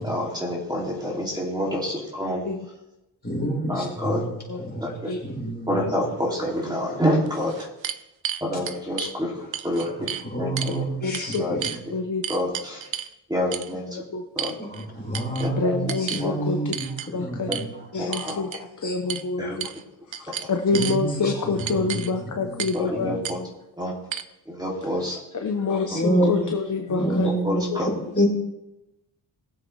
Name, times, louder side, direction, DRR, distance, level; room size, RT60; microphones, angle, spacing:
voice 1, 0.0-2.4 3.7-4.2 4.6-5.1 5.7-7.7 8.4-10.1 10.4-10.8 11.4-11.6 12.3-12.9 13.3-14.0 14.3-14.5 15.4-15.8 16.2-16.3 17.5-17.6 18.0-18.4 19.4-19.6 22.7-23.4 23.8-24.0 24.5-25.2 25.9-26.3 27.0-27.9, equal, 10° right, -4 dB, 2.7 m, -28 dB
voice 2, 3.2-6.0 9.8-9.9 10.2-11.8 14.6-17.8 20.7-22.6 22.9-23.2 25.9-26.4 26.9-27.6 28.1-28.3, right 1 dB, 20° left, -4 dB, 5.1 m, -28 dB
sound 1, 6.6-6.7 7.3-9.1 9.5-10.3 10.6-10.8 11.1-11.8 12.2-13.1 13.5-13.7 14.4-14.9 15.1-15.5 15.9-16.3 16.7-17.1 17.5-17.7 18.1-18.6 19.1-19.3 19.6-19.8 20.1-21.0 21.6-22.1 22.6-22.8 23.2-23.4 24.1-24.2, right 9 dB, 90° right, 0.7 m, -32 dB
voice 3, 11.0-11.4 11.9-12.2 13.9-14.2 15.6-16.6 17.1-17.5 17.9-18.5 18.8-19.7 20.2-23.4 25.4-27.3 27.7-27.8, left 4 dB, 40° left, 3 dB, 0.9 m, -27 dB
20.5 x 7.6 x 3.3 m, 0.93 s
wide cardioid pair, 135°, 45 cm